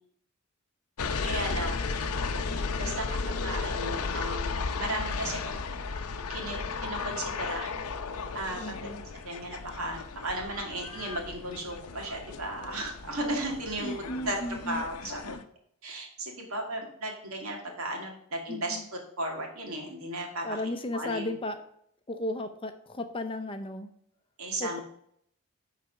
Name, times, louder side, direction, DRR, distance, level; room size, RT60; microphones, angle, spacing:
sound 1, 1.0-15.4, left 4 dB, 90° left, 0.7 m, -34 dB
voice 1, 1.2-1.8 2.8-5.6 6.3-7.7 8.3-8.7 9.2-14.4 14.7-15.4 15.8-18.8 19.2-20.5 20.9-21.3 24.4-24.8, right 1 dB, 70° right, 1 dB, 2.3 m, -35 dB
voice 2, 8.6-9.0 13.8-14.8 18.5-18.9 20.4-21.6 22.1-23.9 24.6-24.8, left 1 dB, 25° left, 8 dB, 0.6 m, -35 dB
10.0 x 4.1 x 5.7 m, 0.68 s
head